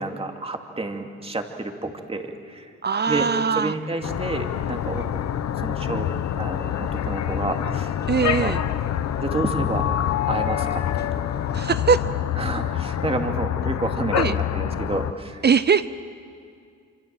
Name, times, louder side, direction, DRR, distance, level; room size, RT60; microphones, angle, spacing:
voice 1, 0.0-2.7 3.1-3.3 3.6-5.0 5.6-6.1 6.4-6.8 7.1-7.9 8.2-8.5 9.2-9.8 10.3-11.1 12.4-15.4, right 2 dB, 20° right, 4 dB, 2.5 m, -29 dB
voice 2, 2.8-3.7 8.1-8.6 11.5-12.0 14.1-14.4 15.4-15.9, right 6 dB, 35° right, 14 dB, 0.6 m, -21 dB
sound 1, 4.0-15.1, left 10 dB, 60° left, 0.9 m, -26 dB
Train / Engine / Alarm, 4.3-12.6, left 5 dB, 35° left, 1.0 m, -38 dB
26.0 x 25.5 x 7.7 m, 2.2 s
cardioid pair, 90°, 30 cm